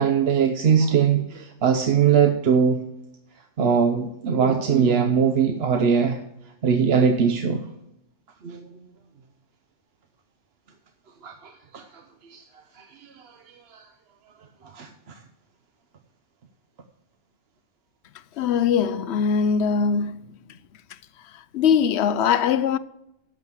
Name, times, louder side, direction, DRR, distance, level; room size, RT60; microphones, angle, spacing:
voice 1, 0.0-2.8 3.6-6.2 6.6-7.6 8.4-8.7 11.2-11.8 12.3-12.4 12.8-13.3 13.7-13.8 14.7-14.9, right 6 dB, 55° right, 1.0 m, -21 dB
voice 2, 18.4-20.2 21.5-22.8, left 7 dB, 65° left, 0.8 m, -21 dB
11.5 x 7.4 x 6.2 m
omnidirectional pair, 1.3 m